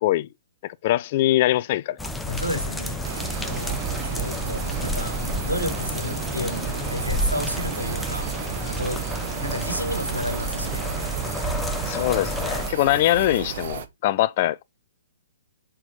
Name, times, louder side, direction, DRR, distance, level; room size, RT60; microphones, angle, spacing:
voice 1, 0.6-2.1 11.9-14.6, left 15 dB, 35° left, 0.3 m, -22 dB
sound 1, 2.0-12.7, left 1 dB, 5° left, 0.7 m, -30 dB
voice 2, 2.2-3.0 3.4-8.3 8.7-9.0 9.4-10.8, equal, 85° right, 2.6 m, -31 dB
sound 2, 3.0-13.9, right 9 dB, 45° right, 1.0 m, -33 dB
6.2 x 4.2 x 4.9 m
figure-of-eight pair, 120°, 0 cm